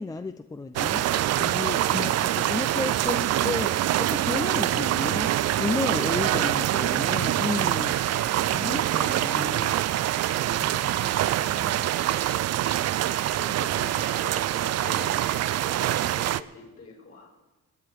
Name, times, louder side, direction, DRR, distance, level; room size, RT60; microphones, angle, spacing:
voice 1, 0.0-8.0 8.5-9.8 10.5-11.9, left 3 dB, 10° left, 9 dB, 0.5 m, -33 dB
sound 1, 0.8-16.4, right 13 dB, 55° right, 0.5 m, -25 dB
voice 2, 6.3-6.9 7.5-8.1 10.5-11.7 13.4-17.3, left 3 dB, 50° left, -1 dB, 5.5 m, -45 dB
Alarm, 7.9-8.4 8.9-9.4 9.8-10.4 10.9-11.4 11.9-12.4 12.9-13.4 13.9-14.4 14.9-15.4 15.9-16.4, left 3 dB, 35° left, 1.8 m, -50 dB
24.5 x 8.9 x 4.8 m, 1.1 s
cardioid pair, 90°, 30 cm